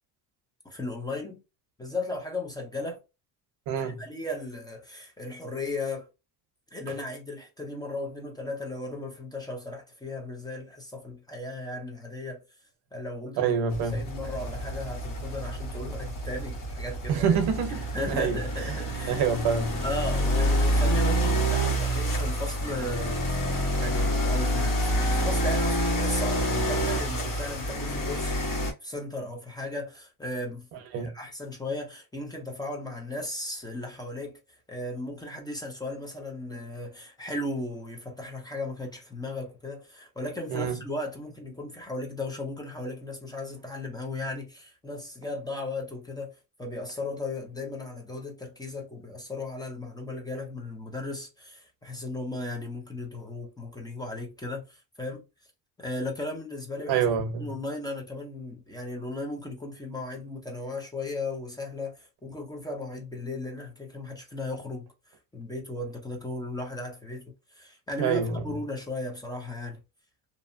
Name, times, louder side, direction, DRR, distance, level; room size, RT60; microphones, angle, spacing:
voice 1, 0.6-1.4 1.8-3.0 3.8-6.1 6.7-12.4 12.9-13.5 13.9-17.4 17.9-19.2 19.8-23.4 23.8-28.6 28.8-34.4 34.7-55.2 55.8-57.0 57.4-64.9 65.3-69.8, left 2 dB, 10° left, 0.6 m, -36 dB
voice 2, 3.7-4.0 13.4-14.0 17.1-18.8 19.1-19.8 30.9-31.1 40.5-40.8 56.9-57.5 68.0-68.4, right 7 dB, 70° right, 0.8 m, -27 dB
sound 1, 13.7-28.7, equal, 50° left, 1.4 m, -27 dB
2.7 x 2.1 x 2.6 m
cardioid pair, 115°, 42 cm